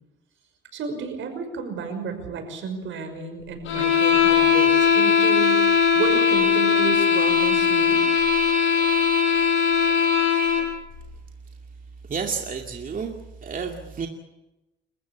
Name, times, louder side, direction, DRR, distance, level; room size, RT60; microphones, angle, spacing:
voice 1, 0.7-5.6 5.9-8.0, right 5 dB, 75° right, 7 dB, 5.8 m, -32 dB
sound 1, 3.7-10.7, left 6 dB, 80° left, 5.9 m, -19 dB
voice 2, 12.1-13.2 13.4-14.1, right 5 dB, 45° right, 3 dB, 2.5 m, -30 dB
28.5 x 15.0 x 8.5 m, 0.96 s
cardioid pair, 90°, 20 cm